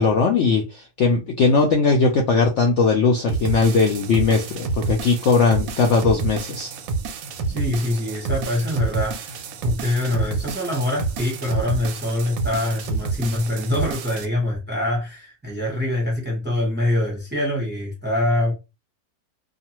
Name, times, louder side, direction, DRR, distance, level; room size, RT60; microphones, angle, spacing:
voice 1, 0.0-6.7, left 4 dB, 70° left, 0.7 m, -19 dB
sound 1, 3.3-14.3, right 4 dB, 70° right, 0.9 m, -29 dB
voice 2, 7.5-18.5, left 1 dB, 10° right, 0.7 m, -24 dB
2.4 x 2.4 x 2.9 m
omnidirectional pair, 1.7 m